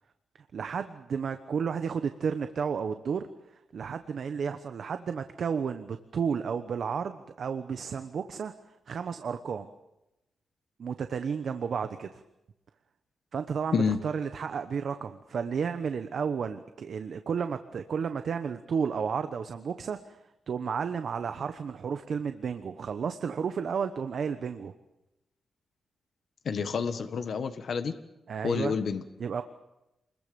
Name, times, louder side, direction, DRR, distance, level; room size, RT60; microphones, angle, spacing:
voice 1, 0.5-3.3 3.7-8.5 8.9-9.7 10.8-12.2 13.3-20.2 20.5-24.7 28.3-28.8 29.2-29.4, right 6 dB, 55° right, 9 dB, 1.1 m, -32 dB
voice 2, 26.4-27.9 28.4-29.0, left 6 dB, 55° left, 8 dB, 1.5 m, -28 dB
28.0 x 21.5 x 7.0 m, 0.93 s
wide cardioid pair, 175°, 0 cm